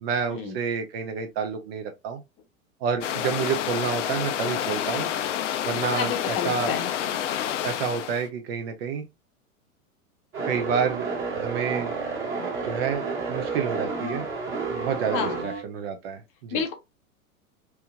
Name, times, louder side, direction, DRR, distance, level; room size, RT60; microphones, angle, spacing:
voice 1, 0.0-2.2 2.8-5.1 5.6-6.7 7.6-9.0 10.4-11.1 11.3-11.9 12.6-14.2 14.7-16.6, right 6 dB, 45° right, 0.8 m, -29 dB
sound 1, 3.0-8.3, left 10 dB, 60° left, 0.6 m, -29 dB
voice 2, 5.8-6.9 15.1-15.5 16.5-16.7, left 6 dB, 30° left, 0.9 m, -30 dB
sound 2, 10.3-15.6, right 4 dB, 30° right, 1.6 m, -30 dB
3.4 x 3.1 x 2.3 m
figure-of-eight pair, 95°, 43 cm